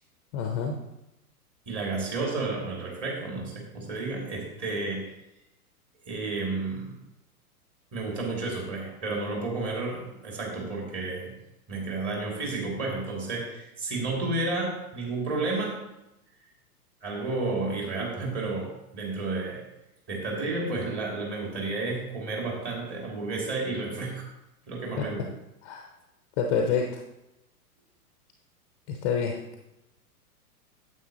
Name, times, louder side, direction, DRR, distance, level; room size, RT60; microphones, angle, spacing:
voice 1, 0.3-0.8 25.0-25.1 25.6-25.9 26.4-27.0 28.9-29.4, left 6 dB, 20° left, 4 dB, 0.5 m, -27 dB
voice 2, 1.7-5.1 6.1-7.0 7.9-11.4 11.7-15.8 17.0-19.6 20.1-24.3 24.6-25.3, right 3 dB, 30° right, -1 dB, 2.6 m, -31 dB
9.2 x 7.8 x 2.9 m, 0.91 s
figure-of-eight pair, 100°, 46 cm